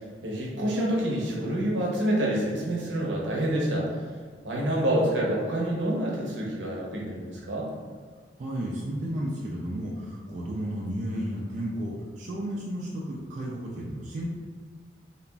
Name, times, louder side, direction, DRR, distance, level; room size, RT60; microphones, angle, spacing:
voice 1, 0.2-3.9 4.4-7.7, right 1 dB, 80° right, -3 dB, 0.7 m, -27 dB
voice 2, 8.4-14.3, right 1 dB, 40° right, -4 dB, 0.3 m, -33 dB
2.9 x 2.4 x 2.2 m, 1.5 s
head